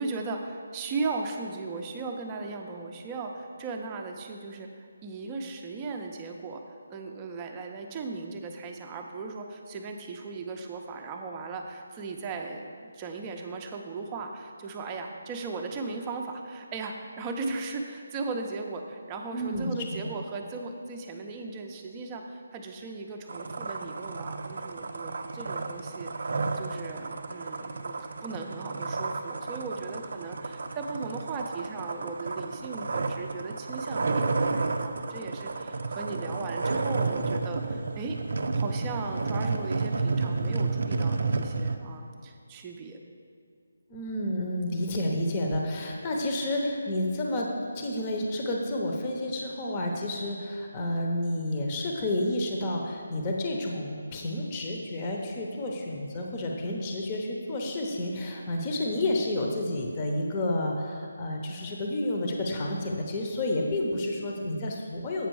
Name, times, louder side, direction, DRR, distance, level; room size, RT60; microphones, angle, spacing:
voice 1, 0.0-4.7 5.0-38.2 38.5-43.0, right 3 dB, 20° right, 3 dB, 0.6 m, -37 dB
voice 2, 19.3-19.7 43.9-47.5 47.7-65.3, left 1 dB, 25° left, 0 dB, 0.9 m, -30 dB
sound 1, 23.3-41.8, right 3 dB, 60° right, 0.5 m, -31 dB
8.1 x 5.9 x 4.7 m, 2.2 s
figure-of-eight pair, 155°, 0 cm